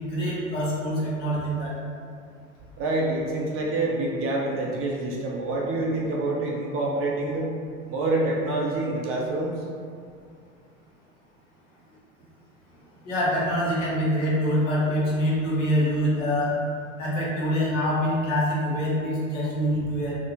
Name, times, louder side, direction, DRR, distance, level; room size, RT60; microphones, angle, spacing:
voice 1, 0.1-1.7 13.0-16.6 17.0-20.2, equal, 65° left, -6 dB, 1.2 m, -25 dB
voice 2, 2.8-7.5 7.9-9.6, right 2 dB, 35° right, -2 dB, 0.5 m, -27 dB
3.5 x 2.0 x 2.9 m, 2.3 s
hypercardioid pair, 85°, 39 cm